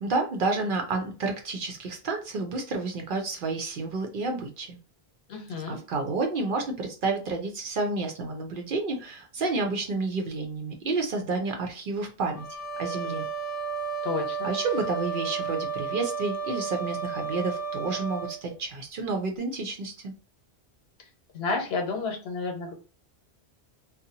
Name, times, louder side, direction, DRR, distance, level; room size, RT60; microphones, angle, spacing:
voice 1, 0.0-4.8 5.7-12.4 12.8-13.3 14.4-20.1, right 3 dB, 60° right, 3 dB, 0.7 m, -30 dB
voice 2, 5.3-5.8 14.0-14.5 21.3-22.7, left 4 dB, 70° left, 2 dB, 1.0 m, -31 dB
sound 1, 12.4-18.4, right 5 dB, 40° left, 0.8 m, -33 dB
2.6 x 2.0 x 2.7 m, 0.34 s
omnidirectional pair, 1.1 m